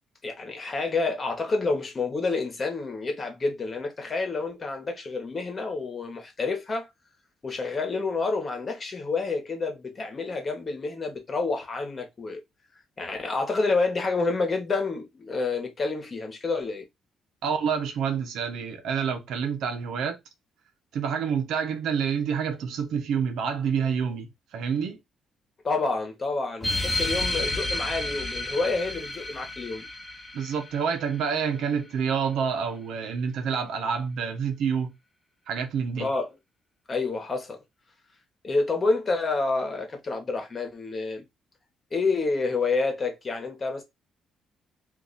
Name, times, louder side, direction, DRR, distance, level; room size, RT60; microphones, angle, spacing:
voice 1, 0.2-6.9 7.4-12.4 13.0-16.9 25.6-29.9 36.0-36.3 36.9-37.6 38.4-41.2 41.9-43.8, left 3 dB, 35° left, 1.2 m, -28 dB
voice 2, 17.4-20.2 20.9-25.0 30.3-34.9 35.5-36.1, right 6 dB, 80° right, 0.9 m, -28 dB
sound 1, 26.6-31.6, left 2 dB, 15° left, 0.9 m, -31 dB
2.7 x 2.5 x 4.0 m
cardioid pair, 90°, 0 cm